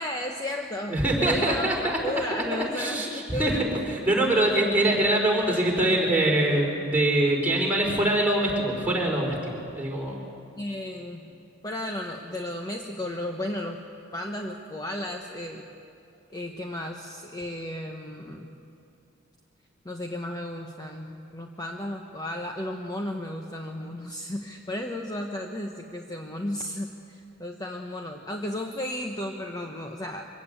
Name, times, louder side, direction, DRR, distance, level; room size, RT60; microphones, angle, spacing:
voice 1, 0.0-1.7 2.0-3.7 10.6-11.2 11.6-13.8 14.1-15.7 16.3-18.5 19.8-30.3, left 1 dB, 20° left, 2 dB, 1.0 m, -34 dB
voice 2, 0.9-2.0 2.3-10.2, right 1 dB, 10° right, -3 dB, 4.1 m, -24 dB
23.5 x 16.0 x 8.7 m, 2.6 s
head